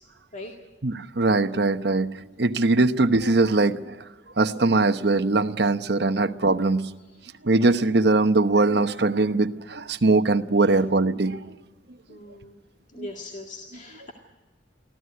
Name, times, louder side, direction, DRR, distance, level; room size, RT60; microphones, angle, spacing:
voice 1, 0.8-2.1 2.4-4.0 4.4-6.8 7.4-11.4 13.0-13.1, right 3 dB, 60° right, 10 dB, 1.0 m, -21 dB
voice 2, 12.1-12.6 12.9-14.1, left 2 dB, 40° left, 2 dB, 2.1 m, -40 dB
24.0 x 15.5 x 9.4 m, 1.2 s
head